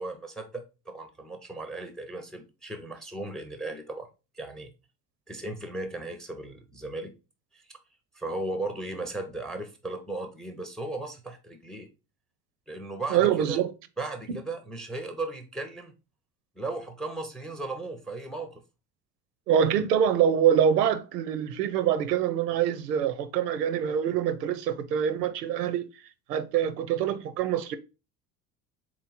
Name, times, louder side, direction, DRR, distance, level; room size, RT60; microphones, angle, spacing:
voice 1, 0.0-4.1 4.3-4.7 5.3-7.1 7.5-7.6 8.1-11.9 12.7-13.6 14.0-15.9 16.6-18.6, right 2 dB, ahead, 0.4 m, -36 dB
voice 2, 13.1-13.7 19.5-25.8 26.3-27.8, right 9 dB, 75° right, 0.5 m, -25 dB
3.9 x 3.0 x 3.8 m
figure-of-eight pair, 60°, 49 cm